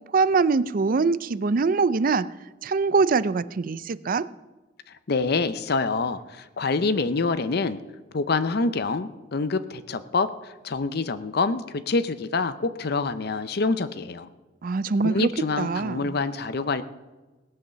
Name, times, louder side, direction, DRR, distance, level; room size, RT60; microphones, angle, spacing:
voice 1, 0.0-2.3 2.6-4.3 14.6-15.3 15.6-16.2, right 4 dB, 50° right, 17 dB, 0.5 m, -23 dB
voice 2, 5.1-7.8 8.1-14.3 15.0-16.8, left 3 dB, 60° left, 12 dB, 0.6 m, -26 dB
18.0 x 7.9 x 6.8 m, 1.2 s
head